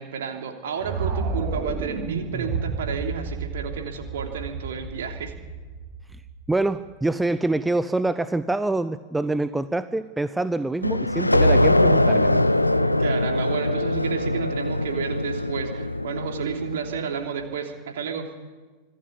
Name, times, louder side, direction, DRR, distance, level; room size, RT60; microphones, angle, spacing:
voice 1, 0.0-5.3 13.0-18.3, right 7 dB, 60° right, 3 dB, 3.2 m, -31 dB
sound 1, 0.8-6.9, right 4 dB, 35° right, 6.7 m, -31 dB
voice 2, 6.5-12.5, right 2 dB, 5° right, 14 dB, 0.7 m, -25 dB
sound 2, 10.8-17.2, left 1 dB, 85° left, 0.8 m, -22 dB
25.5 x 16.0 x 8.6 m, 1.3 s
figure-of-eight pair, 90°, 0 cm